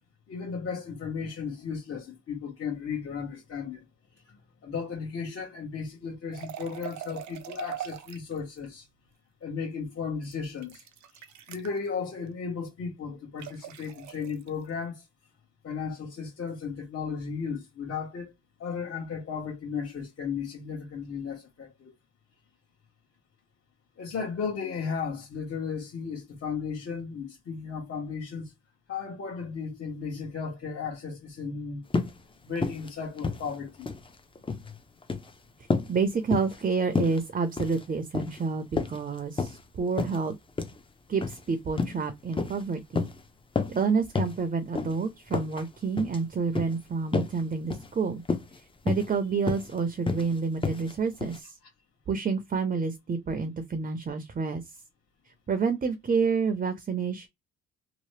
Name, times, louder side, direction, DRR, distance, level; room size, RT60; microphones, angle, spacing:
voice 1, 0.3-3.8 4.3-8.9 9.4-10.8 11.1-11.2 11.5-15.0 15.6-18.3 18.6-21.9 24.0-28.5 28.9-31.9 32.4-33.9 34.7-34.8, left 5 dB, 45° left, 1.1 m, -35 dB
sound 1, 6.3-8.4 10.2-11.8 13.4-14.5, right 11 dB, 70° right, 0.6 m, -41 dB
sound 2, 31.9-32.2 32.6-32.9 33.2-34.1 34.4-34.7 35.0-35.3 35.7-35.9 36.3-36.6 37.0-37.2 37.5-37.8 38.1-38.4 38.8-39.6 40.0-40.2 40.6-40.8 41.2-41.4 41.8-42.0 42.3-42.6 43.0-43.2 43.6-43.8 44.2-44.4 44.8-44.9 45.3-45.7 46.0-46.2 46.6-46.7 47.1-47.4 47.7-47.9 48.3-48.6 48.9-49.1 49.5-49.7 50.1-50.3 50.6-50.9 51.2-51.4, left 4 dB, 15° left, 0.6 m, -30 dB
voice 2, 35.9-40.3 41.1-43.1 43.7-48.2 48.8-51.6 52.1-54.8 55.5-57.3, right 5 dB, 30° right, 0.6 m, -29 dB
2.9 x 2.0 x 3.1 m
cardioid pair, 90°, 30 cm